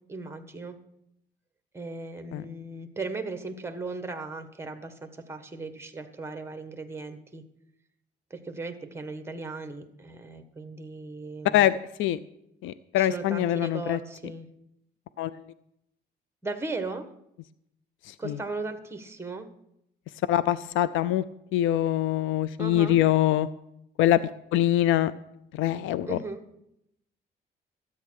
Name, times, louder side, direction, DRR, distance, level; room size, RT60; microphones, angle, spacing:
voice 1, 0.1-0.8 1.7-7.4 8.3-11.7 13.0-14.5 16.4-17.1 18.2-19.5 22.6-23.0 26.0-26.4, right 3 dB, 10° right, 7 dB, 1.5 m, -37 dB
voice 2, 11.5-12.2 12.6-14.0 15.2-15.4 18.0-18.4 20.3-21.2 21.5-23.5 24.0-24.2 24.5-25.1 25.5-26.2, left 13 dB, 90° left, 16 dB, 0.4 m, -24 dB
13.0 x 8.6 x 6.4 m, 0.79 s
cardioid pair, 90°, 20 cm